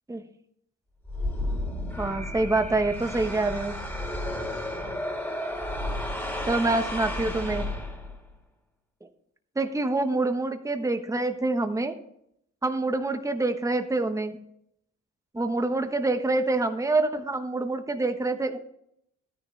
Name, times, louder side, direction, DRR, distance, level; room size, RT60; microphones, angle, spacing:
sound 1, 1.0-8.3, left 1 dB, 10° left, 2.9 m, -32 dB
voice 1, 2.0-3.8 6.5-7.7 9.6-11.9 12.6-14.4 15.3-18.6, right 2 dB, 10° right, 6 dB, 1.1 m, -26 dB
13.0 x 10.0 x 3.3 m, 0.73 s
cardioid pair, 90°, 30 cm